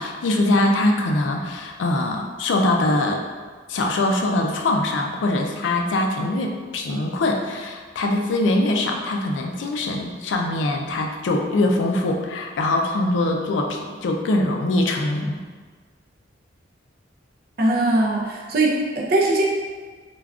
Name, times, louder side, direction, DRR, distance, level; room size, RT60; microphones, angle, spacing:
voice 1, 0.0-3.2 3.7-15.4, left 2 dB, 70° left, 2 dB, 0.3 m, -22 dB
voice 2, 17.6-19.4, right 2 dB, 50° right, -2 dB, 0.4 m, -20 dB
3.4 x 2.3 x 2.3 m, 1.5 s
head